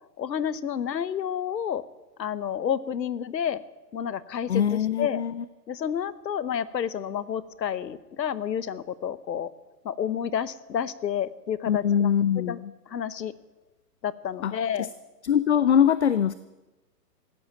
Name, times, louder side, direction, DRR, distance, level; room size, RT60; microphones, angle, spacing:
voice 1, 0.2-1.8 2.2-3.6 3.9-5.2 5.7-9.5 9.8-12.1 12.5-12.6 12.9-13.3 14.0-14.9, left 8 dB, 90° left, 16 dB, 1.2 m, -30 dB
voice 2, 4.5-5.4 11.7-12.7 14.4-14.5 14.8-14.9 15.2-16.3, left 8 dB, 45° left, 15 dB, 0.5 m, -23 dB
15.5 x 10.0 x 9.0 m, 1.1 s
hypercardioid pair, 165°, 49 cm